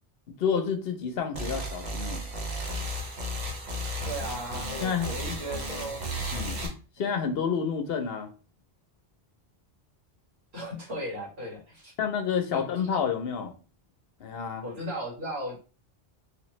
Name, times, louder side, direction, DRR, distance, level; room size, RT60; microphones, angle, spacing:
voice 1, 0.4-2.2 4.8-5.1 6.3-6.7 7.0-8.3 12.0-13.5 14.2-14.6, left 6 dB, 70° left, 5 dB, 0.9 m, -29 dB
sound 1, 1.3-6.7, right 1 dB, 45° right, 0.9 m, -34 dB
voice 2, 4.0-6.1 7.0-7.1 10.5-11.9 12.5-12.6 14.6-15.6, equal, 80° right, -5 dB, 2.0 m, -36 dB
3.3 x 3.0 x 3.1 m, 0.35 s
omnidirectional pair, 1.0 m